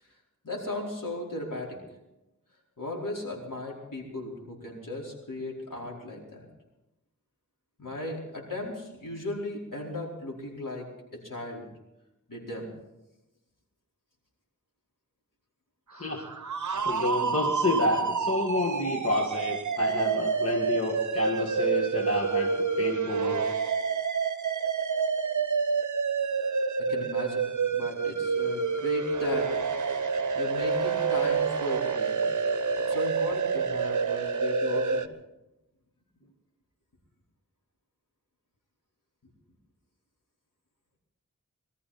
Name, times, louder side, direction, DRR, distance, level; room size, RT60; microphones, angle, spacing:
voice 1, 0.4-1.8 2.8-6.2 7.8-10.9 11.1-11.7 12.3-12.7 26.9-29.5 30.3-32.2 32.9-35.0, left 1 dB, 70° left, -3 dB, 4.7 m, -36 dB
voice 2, 15.9-16.3 16.8-23.5, left 2 dB, 45° left, -2 dB, 2.0 m, -29 dB
sound 1, 16.0-35.1, right 5 dB, 60° right, 0.8 m, -28 dB
22.5 x 14.0 x 4.3 m, 0.97 s
wide cardioid pair, 65°, 33 cm